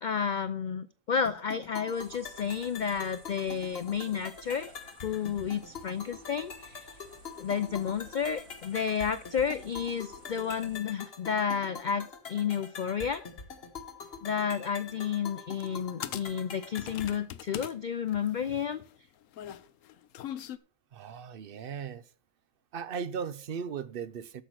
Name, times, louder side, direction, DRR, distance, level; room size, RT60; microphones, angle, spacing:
voice 1, 0.0-4.7 5.0-6.9 7.4-13.2 14.2-18.8, left 7 dB, 90° left, 0.4 m, -31 dB
sound 1, 1.3-17.3, left 5 dB, 50° left, 1.3 m, -45 dB
sound 2, 1.9-10.8, right 2 dB, 85° right, 2.2 m, -56 dB
sound 3, 15.6-15.7 16.0-17.7 18.1-20.6, left 11 dB, 70° left, 1.0 m, -41 dB
voice 2, 20.9-22.0 22.7-24.4, right 6 dB, 55° right, 0.7 m, -37 dB
8.6 x 6.9 x 6.0 m
omnidirectional pair, 1.4 m